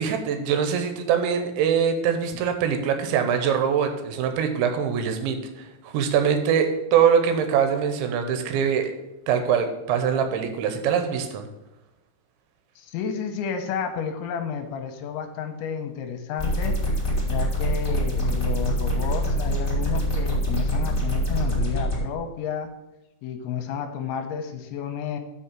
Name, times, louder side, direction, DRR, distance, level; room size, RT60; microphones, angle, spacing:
voice 1, 0.0-8.9 9.3-11.5, right 7 dB, 80° right, 7 dB, 3.0 m, -23 dB
voice 2, 12.8-16.8 17.2-22.7 23.2-25.2, left 7 dB, 85° left, 6 dB, 3.1 m, -31 dB
sound 1, 16.4-22.0, equal, 10° left, 1.0 m, -24 dB
6.3 x 5.6 x 7.1 m, 0.95 s
omnidirectional pair, 5.4 m